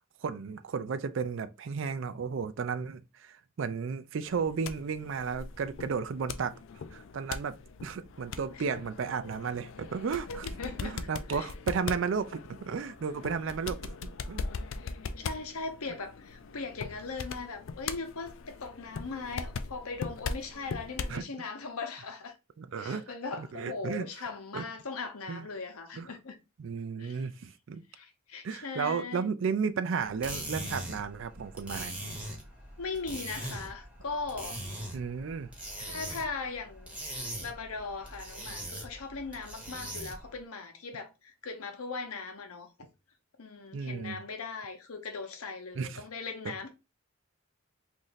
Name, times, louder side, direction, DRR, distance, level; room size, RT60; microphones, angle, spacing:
voice 1, 0.2-6.5 6.9-7.6 7.8-10.5 10.8-14.4 21.1-21.2 22.6-23.0 23.4-24.1 24.5-24.6 25.3-25.5 26.0-26.1 26.6-27.8 28.4-32.0 34.9-35.5 43.7-44.2 45.8-46.0 46.4-46.7, right 5 dB, 60° right, 0.4 m, -33 dB
Smacks Fast, 4.3-21.2, left 5 dB, 60° left, 0.3 m, -40 dB
voice 2, 10.3-11.0 11.3-11.5 14.8-22.3 22.8-26.4 27.0-27.3 27.9-29.3 32.8-34.6 35.8-37.0 37.4-42.9 43.4-46.7, left 4 dB, 90° left, 0.9 m, -39 dB
sound 1, 30.0-40.3, right 1 dB, 5° right, 0.8 m, -41 dB
3.0 x 2.6 x 3.9 m
head